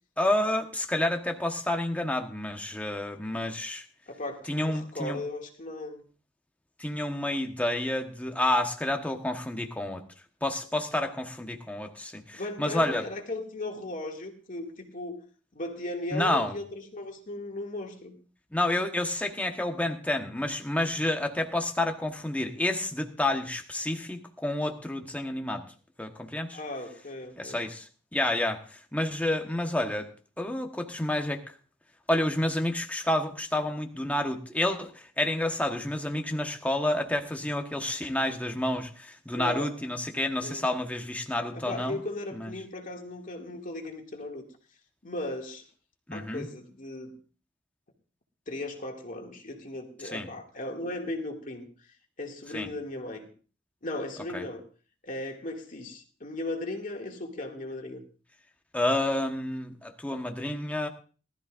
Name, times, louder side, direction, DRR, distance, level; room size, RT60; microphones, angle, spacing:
voice 1, 0.2-3.8 4.5-5.2 6.8-10.0 10.4-13.1 16.1-16.6 18.5-25.6 26.0-26.6 27.4-30.1 30.4-31.4 32.1-42.0 42.3-42.5 46.1-46.5 50.0-50.3 52.5-52.7 54.3-54.4 58.7-60.9, left 1 dB, 10° left, 3 dB, 1.2 m, -29 dB
voice 2, 4.1-6.0 12.3-15.2 15.5-18.2 26.5-27.6 39.3-39.7 40.4-40.7 41.5-44.5 45.0-45.6 46.1-47.1 48.5-51.7 52.2-53.3 53.8-54.6 55.0-58.0, left 2 dB, 45° left, 2 dB, 2.2 m, -37 dB
19.5 x 13.0 x 2.5 m, 0.38 s
head